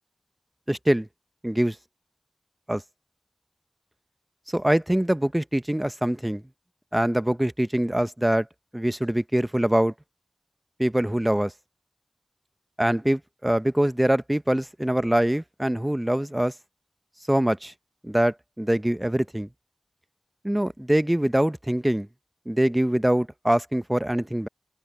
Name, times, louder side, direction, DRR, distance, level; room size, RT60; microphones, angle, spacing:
voice 1, 0.7-1.1 1.4-1.8 2.7-2.8 4.5-6.4 6.9-8.5 8.7-9.9 10.8-11.5 12.8-16.5 17.3-17.7 18.0-19.5 20.4-22.1 22.5-24.5, right 1 dB, 15° right, 0.7 m, -23 dB
wide cardioid pair, 50°, 0 cm